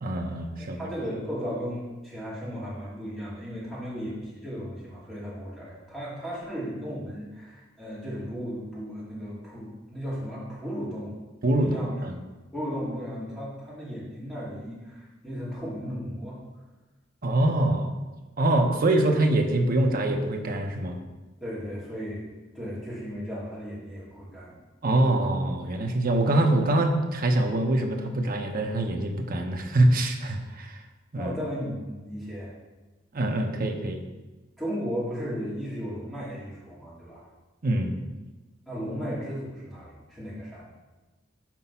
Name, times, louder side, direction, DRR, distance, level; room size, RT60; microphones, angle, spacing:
voice 1, 0.0-0.8 11.4-12.2 17.2-17.9 18.4-21.0 24.8-30.8 31.1-31.3 33.1-34.0 37.6-37.9, right 1 dB, 45° right, 3 dB, 0.7 m, -24 dB
voice 2, 0.6-11.2 11.6-11.9 12.5-16.4 21.4-24.6 31.1-32.5 34.6-37.2 38.7-40.6, equal, ahead, -9 dB, 2.6 m, -35 dB
6.0 x 4.9 x 5.6 m, 1.2 s
head